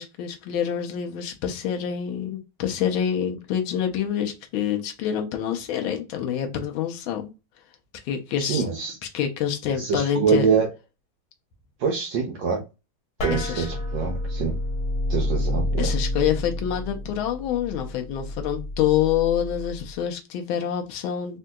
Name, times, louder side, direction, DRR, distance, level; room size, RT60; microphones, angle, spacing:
voice 1, 0.0-7.3 8.0-8.6 9.1-10.5 13.3-13.7 15.8-21.4, left 9 dB, 80° left, 1.3 m, -26 dB
voice 2, 8.4-9.0 9.8-10.7 11.8-12.6 13.2-14.6 15.1-15.9, right 6 dB, 70° right, 1.1 m, -25 dB
sound 1, 13.2-19.9, left 1 dB, 55° left, 1.1 m, -29 dB
3.6 x 2.6 x 2.2 m
omnidirectional pair, 2.3 m